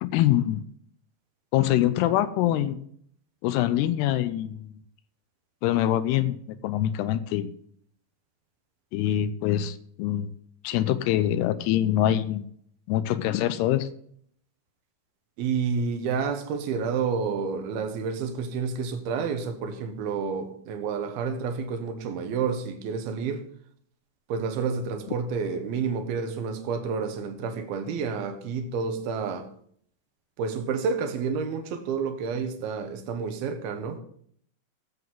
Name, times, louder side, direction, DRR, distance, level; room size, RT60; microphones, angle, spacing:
voice 1, 0.0-0.6 1.5-2.8 3.4-4.7 5.6-7.5 8.9-10.3 10.6-12.5 12.9-13.9, left 12 dB, 80° left, 2.6 m, -24 dB
voice 2, 15.4-23.4 24.3-29.5 30.4-34.0, right 5 dB, 70° right, 2.9 m, -29 dB
18.5 x 7.8 x 3.8 m
omnidirectional pair, 5.0 m